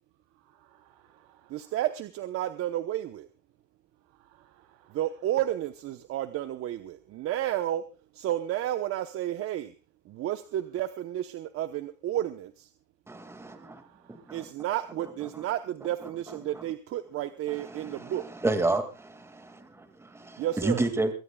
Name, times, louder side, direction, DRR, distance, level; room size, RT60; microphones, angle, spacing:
voice 1, 0.6-1.7 4.3-4.9 13.5-14.2, right 12 dB, 70° right, 8 dB, 3.3 m, -62 dB
voice 2, 1.5-3.3 4.9-7.8 8.1-9.7 10.1-12.7 14.3-18.2 20.4-20.8, right 13 dB, 35° right, 10 dB, 1.0 m, -31 dB
voice 3, 13.1-13.8 14.1-14.5 16.0-16.6 17.5-21.1, right 2 dB, 5° right, 8 dB, 2.1 m, -32 dB
23.0 x 16.5 x 2.3 m, 0.31 s
supercardioid pair, 150°, 38 cm